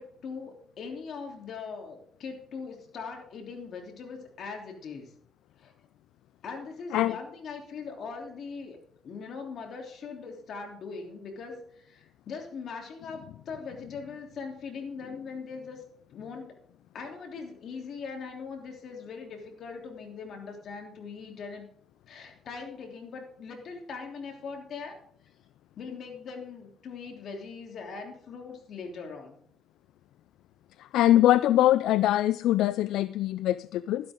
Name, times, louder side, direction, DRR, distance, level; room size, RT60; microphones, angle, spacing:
voice 1, 0.0-5.1 5.6-5.7 6.4-8.8 9.0-15.8 16.1-16.5 16.9-21.7 22.1-25.0 25.8-29.4, left 5 dB, 65° left, 2 dB, 3.2 m, -41 dB
voice 2, 30.8-34.1, left 13 dB, 85° left, 16 dB, 0.3 m, -23 dB
12.5 x 12.0 x 3.7 m, 0.65 s
cardioid pair, 90°, 0 cm